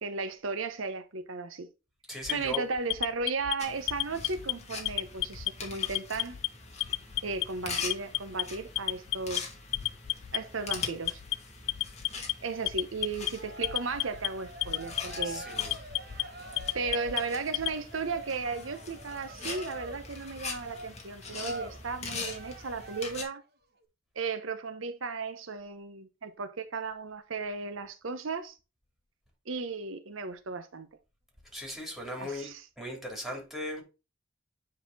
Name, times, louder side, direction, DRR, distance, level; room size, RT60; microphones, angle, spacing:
voice 1, 0.0-1.7 2.3-6.4 7.2-9.4 10.3-11.2 12.4-15.4 16.7-23.4 24.2-28.6 29.5-30.9 32.2-32.7, right 4 dB, 80° right, 0.8 m, -35 dB
voice 2, 2.1-2.6 15.2-15.7 31.5-33.8, left 1 dB, ahead, 3.1 m, -38 dB
Alarm, 2.2-3.5 3.9-4.5 4.8-5.5 5.8-6.5 6.8-7.4 7.8-8.4 8.8-9.4 9.7-10.4 10.7-11.3 11.7-12.3 12.7-13.3 13.6-14.3 14.6-15.2 15.6-16.2 16.6-17.7, left 17 dB, 70° left, 0.4 m, -31 dB
sound 1, 3.6-23.2, left 4 dB, 35° left, 2.3 m, -43 dB
Cheering, 13.3-23.4, right 1 dB, 55° right, 1.4 m, -45 dB
9.6 x 4.2 x 4.0 m
head